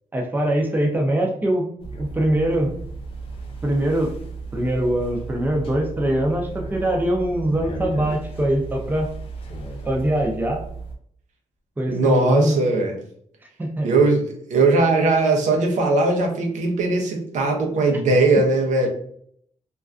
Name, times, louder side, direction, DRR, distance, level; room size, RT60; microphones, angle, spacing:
voice 1, 0.1-1.7 2.0-2.7 3.6-4.1 4.5-9.1 9.9-10.6 11.8-12.6 13.6-13.9, right 1 dB, 15° right, 1 dB, 0.5 m, -22 dB
sound 1, 1.8-11.0, right 3 dB, 45° left, 0.6 m, -34 dB
voice 2, 11.9-12.9 13.8-18.9, right 3 dB, 80° right, 2 dB, 0.6 m, -19 dB
2.4 x 2.2 x 2.4 m, 0.65 s
cardioid pair, 95°, 12 cm